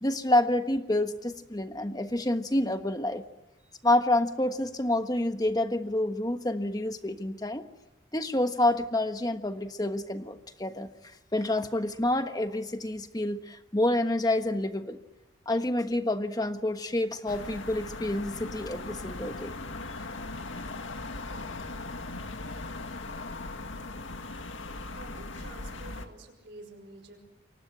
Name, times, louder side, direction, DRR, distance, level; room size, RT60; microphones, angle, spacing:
voice 1, 0.0-3.2 3.8-7.7 8.1-10.9 11.3-15.0 15.5-19.5, left 1 dB, 20° left, 8 dB, 1.3 m, -28 dB
sound 1, 17.3-26.1, left 2 dB, 90° left, 2.0 m, -39 dB
voice 2, 25.0-27.2, right 2 dB, 60° right, 6 dB, 6.0 m, -49 dB
29.0 x 24.5 x 8.0 m, 1.0 s
head